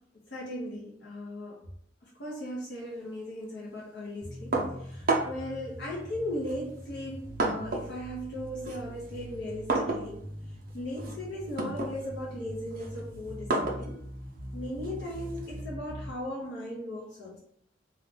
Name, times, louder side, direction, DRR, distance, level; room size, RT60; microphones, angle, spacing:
voice 1, 0.3-1.6 2.0-10.2 10.7-14.0 14.5-17.4, left 1 dB, 65° left, -4 dB, 0.7 m, -38 dB
sound 1, 4.2-16.2, equal, 15° left, 1.2 m, -43 dB
sound 2, 4.5-5.5 6.4-8.0 8.3-15.6, right 2 dB, 50° right, 0.5 m, -33 dB
2.3 x 2.3 x 3.7 m, 0.68 s
head